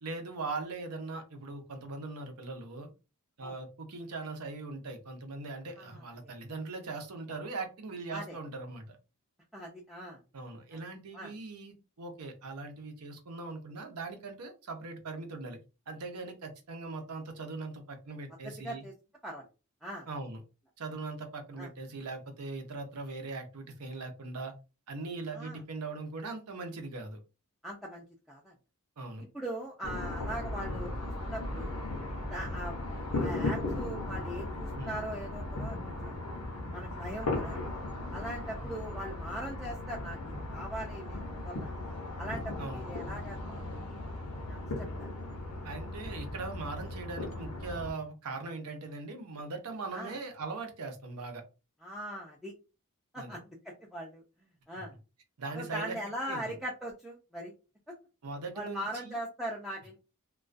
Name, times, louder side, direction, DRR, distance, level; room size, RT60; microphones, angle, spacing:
voice 1, 0.0-2.9 3.4-9.0 10.3-15.6 15.9-18.8 20.1-20.4 20.8-24.5 24.9-27.2 29.0-29.3 34.7-34.9 42.6-42.8 45.6-51.4 53.2-53.4 55.4-56.0 56.3-56.6 58.2-59.2, right 3 dB, 85° right, 0.7 m, -40 dB
voice 2, 5.8-6.3 8.1-8.4 9.5-10.2 11.1-11.3 18.4-18.9 19.2-19.4 19.8-20.1 21.6-21.7 25.3-25.6 27.6-28.5 29.2-31.8 32.3-32.7 33.1-36.2 36.7-37.6 38.1-41.7 42.2-43.8 44.5-45.1 49.9-50.2 51.8-52.5 53.1-54.2 54.7-54.9 55.5-57.5 58.5-60.0, right 1 dB, ahead, 0.4 m, -41 dB
sound 1, 29.8-47.9, left 2 dB, 85° left, 0.7 m, -37 dB
2.3 x 2.2 x 2.5 m
head